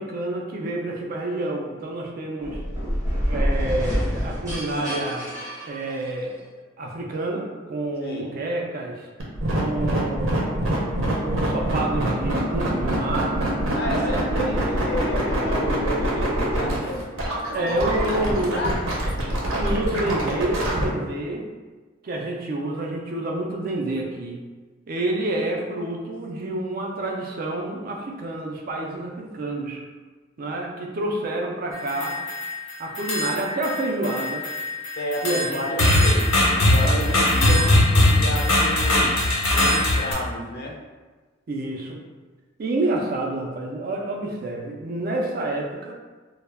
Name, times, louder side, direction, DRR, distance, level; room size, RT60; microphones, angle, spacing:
voice 1, 0.0-2.6 3.3-5.3 5.7-6.4 6.8-9.1 9.6-10.5 11.2-13.4 13.9-14.5 17.5-18.8 19.6-21.5 22.0-24.4 24.9-29.8 30.4-32.2 32.8-34.5 35.2-35.9 36.8-37.6 41.5-42.0 42.6-45.9, right 2 dB, 45° right, 0 dB, 0.3 m, -28 dB
sound 1, 2.4-6.4, equal, 15° right, 0.7 m, -27 dB
voice 2, 8.0-8.3 13.7-17.2 17.6-17.7 18.5-18.7 35.0-39.1 39.5-40.8, left 1 dB, 50° left, -1 dB, 0.4 m, -31 dB
sound 2, 9.2-20.8, right 1 dB, 80° right, 0.6 m, -25 dB
sound 3, 31.7-32.5 32.9-33.8 34.0-40.1, left 1 dB, 90° left, 0.8 m, -20 dB
2.1 x 2.0 x 3.3 m, 1.3 s
head